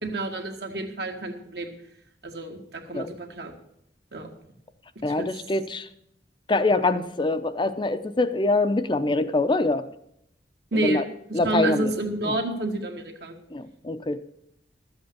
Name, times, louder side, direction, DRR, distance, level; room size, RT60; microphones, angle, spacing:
voice 1, 0.0-1.7 2.2-3.5 4.1-4.3 5.2-5.3 10.7-11.0 11.3-13.3, right 2 dB, 65° right, 3 dB, 1.9 m, -29 dB
voice 2, 5.0-5.9 6.5-9.8 10.7-11.0 11.3-11.9 13.5-14.2, left 2 dB, 25° left, 10 dB, 0.6 m, -24 dB
12.5 x 7.9 x 6.8 m, 0.75 s
head